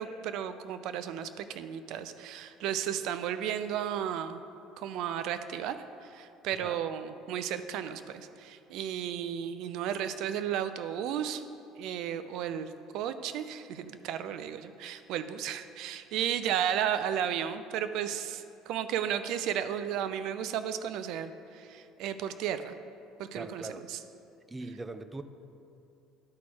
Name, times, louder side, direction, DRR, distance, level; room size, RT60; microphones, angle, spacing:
voice 1, 0.0-4.4 4.8-5.8 6.0-11.4 11.8-22.7 23.2-24.0, right 9 dB, 65° right, 11 dB, 0.4 m, -34 dB
voice 2, 23.3-23.9 24.5-25.2, right 2 dB, 20° right, 10 dB, 0.5 m, -41 dB
11.5 x 4.2 x 4.8 m, 2.8 s
hypercardioid pair, 75°, 0 cm